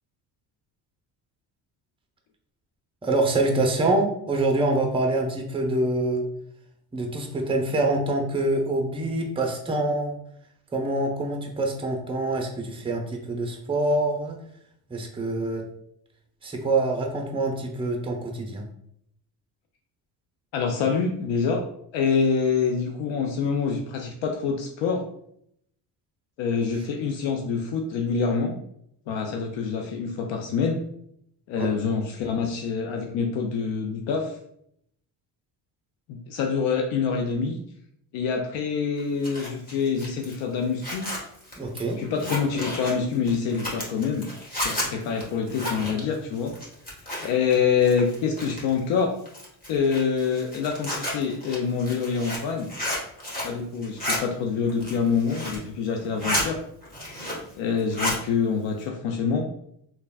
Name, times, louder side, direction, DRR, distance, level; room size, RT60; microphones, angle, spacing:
voice 1, 3.0-6.2 6.9-10.1 10.7-14.4 14.9-15.6 16.4-18.6 31.6-31.8 41.6-42.0, right 2 dB, 10° right, 2 dB, 0.6 m, -25 dB
voice 2, 20.5-21.6 21.9-25.0 26.4-28.6 29.1-30.8 31.5-34.4 36.1-37.6 38.1-41.1 42.0-44.3 44.6-46.5 47.2-49.1 49.7-52.7 53.4-56.6 57.6-59.4, left 6 dB, 65° left, 3 dB, 0.5 m, -26 dB
Zipper (clothing), 39.0-47.5 47.8-48.8 49.3-53.6 53.8-54.2 54.7-55.7 56.0-56.5 56.8-57.5 57.8-58.2, left 1 dB, 15° left, 1.4 m, -32 dB
3.2 x 2.3 x 2.3 m, 0.72 s
supercardioid pair, 60°, 50 cm